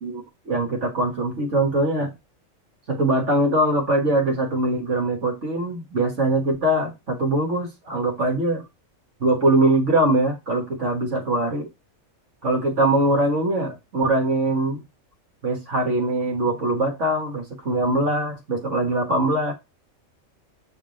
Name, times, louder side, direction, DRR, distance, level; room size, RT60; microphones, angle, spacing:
voice 1, 0.0-2.1 2.9-8.6 9.2-11.7 12.4-14.8 15.4-19.5, right 1 dB, 60° right, 1.8 m, -22 dB
7.9 x 3.8 x 5.1 m
omnidirectional pair, 1.4 m